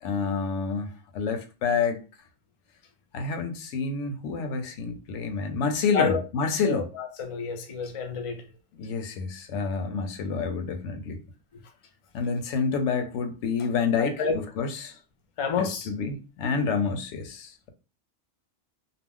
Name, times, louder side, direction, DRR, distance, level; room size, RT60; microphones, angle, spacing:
voice 1, 0.0-0.9 1.1-2.0 3.1-6.9 8.7-11.2 12.1-15.0 15.6-17.7, left 5 dB, 85° left, 0.9 m, -28 dB
voice 2, 6.6-8.4 14.0-14.4 15.4-15.9, left 5 dB, 45° left, 0.4 m, -28 dB
2.4 x 2.0 x 3.5 m
omnidirectional pair, 1.2 m